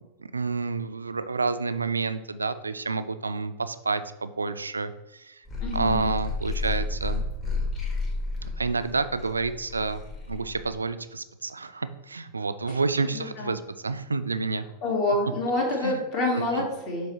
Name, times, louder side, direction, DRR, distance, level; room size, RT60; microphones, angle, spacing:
voice 1, 0.2-5.4 5.7-7.2 8.6-10.0 10.3-14.7 15.8-16.0 16.3-16.7, right 4 dB, 80° right, 11 dB, 0.3 m, -29 dB
sound 1, 5.5-10.8, left 3 dB, 25° left, 1.7 m, -31 dB
voice 2, 5.6-6.1 13.1-13.6 14.8-17.1, left 2 dB, 40° left, -2 dB, 2.1 m, -27 dB
7.1 x 3.2 x 4.2 m, 0.99 s
figure-of-eight pair, 90°, 0 cm